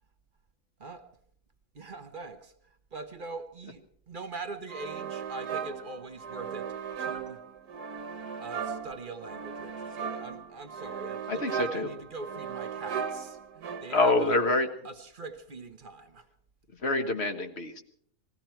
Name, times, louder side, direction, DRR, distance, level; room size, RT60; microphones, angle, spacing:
voice 1, 1.7-2.5 2.9-7.4 8.4-14.4 14.8-16.3, right 3 dB, 40° right, 1.1 m, -42 dB
sound 1, 4.7-14.2, right 7 dB, 85° right, 1.6 m, -37 dB
voice 2, 11.3-11.9 13.9-14.7 16.8-17.8, left 2 dB, 45° left, 1.6 m, -26 dB
20.0 x 15.5 x 4.5 m
omnidirectional pair, 1.6 m